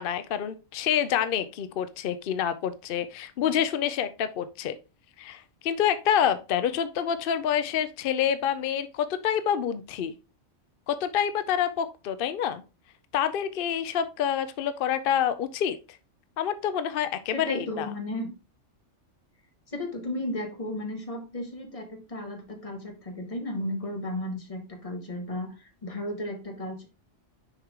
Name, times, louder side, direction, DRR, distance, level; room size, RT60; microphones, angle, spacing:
voice 1, 0.0-4.8 5.2-10.1 10.9-12.6 13.1-15.8 16.4-17.9, left 9 dB, 60° left, 12 dB, 0.7 m, -27 dB
voice 2, 17.3-18.3 19.7-26.8, left 1 dB, 30° left, 3 dB, 1.5 m, -34 dB
6.5 x 4.7 x 3.6 m, 0.30 s
omnidirectional pair, 1.2 m